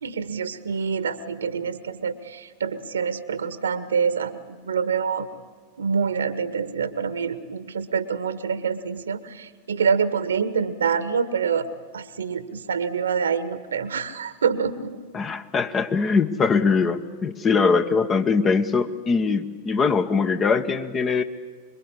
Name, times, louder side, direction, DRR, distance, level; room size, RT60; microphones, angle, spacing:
voice 1, 0.0-5.3 5.8-11.7 11.9-15.1, right 6 dB, 70° right, 14 dB, 1.6 m, -26 dB
voice 2, 15.1-21.2, left 5 dB, 25° left, 8 dB, 1.5 m, -22 dB
26.0 x 23.0 x 9.9 m, 1.5 s
figure-of-eight pair, 90°, 0 cm